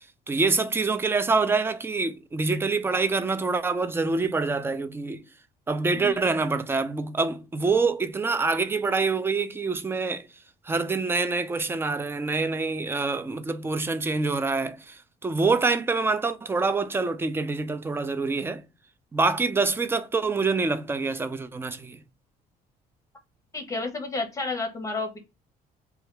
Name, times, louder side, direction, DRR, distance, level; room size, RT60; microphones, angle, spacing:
voice 1, 0.3-5.2 5.7-10.3 10.7-18.6 19.1-22.0, right 3 dB, 15° right, 0.3 m, -26 dB
voice 2, 23.5-25.2, left 3 dB, 20° left, 1.0 m, -31 dB
2.7 x 2.4 x 3.3 m
cardioid pair, 110°, 17 cm